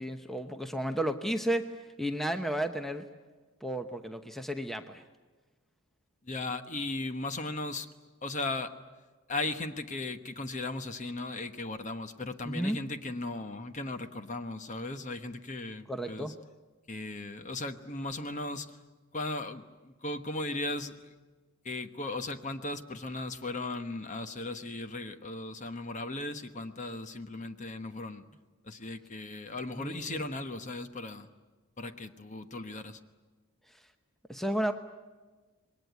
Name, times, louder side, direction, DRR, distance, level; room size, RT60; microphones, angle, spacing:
voice 1, 0.0-1.7 2.0-3.1 3.6-5.0 12.4-12.8 15.9-16.3 29.8-30.2 34.3-34.7, right 1 dB, ahead, 7 dB, 0.9 m, -32 dB
voice 2, 6.2-7.9 8.2-8.7 9.3-16.3 16.9-18.8 19.1-21.1 21.6-28.2 28.6-31.3 31.8-33.0, left 2 dB, 35° left, 9 dB, 1.1 m, -37 dB
27.0 x 21.5 x 9.4 m, 1.3 s
head